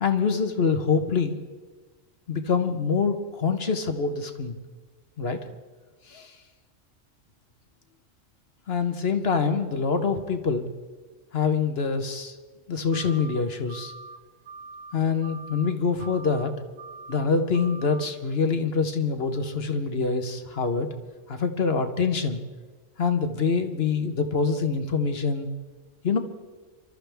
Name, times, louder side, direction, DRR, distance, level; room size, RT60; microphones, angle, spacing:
voice 1, 0.0-1.4 2.3-4.6 5.2-5.4 6.1-6.3 8.7-10.6 11.3-12.3 12.7-13.9 14.9-16.5 17.1-20.9 21.3-22.4 23.0-25.5 26.0-26.2, left 5 dB, 55° left, 7 dB, 1.3 m, -25 dB
sound 1, 12.9-13.4 13.7-14.2 14.4-14.9 15.2-15.7 16.0-16.5 16.8-17.3 17.5-18.0, right 3 dB, 85° right, 1.3 m, -43 dB
26.0 x 13.0 x 3.5 m, 1.3 s
omnidirectional pair, 1.3 m